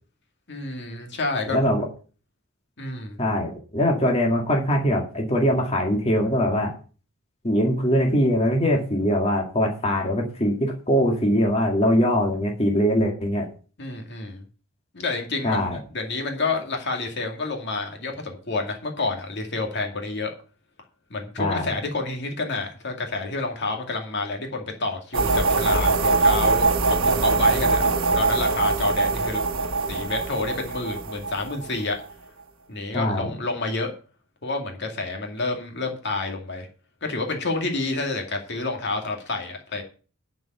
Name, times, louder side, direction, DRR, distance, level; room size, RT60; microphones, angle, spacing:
voice 1, 0.5-1.6 2.8-3.2 13.8-14.4 14.9-20.3 21.1-29.4 29.9-32.0 32.7-33.9 34.4-36.7 37.0-39.8, left 3 dB, 55° left, 3 dB, 2.2 m, -29 dB
voice 2, 1.5-1.9 3.2-6.7 7.4-13.5 15.4-15.8 21.4-21.7 32.9-33.3, equal, 30° left, 0 dB, 2.1 m, -22 dB
sound 1, 25.1-32.0, right 3 dB, 65° right, 1.2 m, -22 dB
11.0 x 5.4 x 8.1 m, 0.38 s
head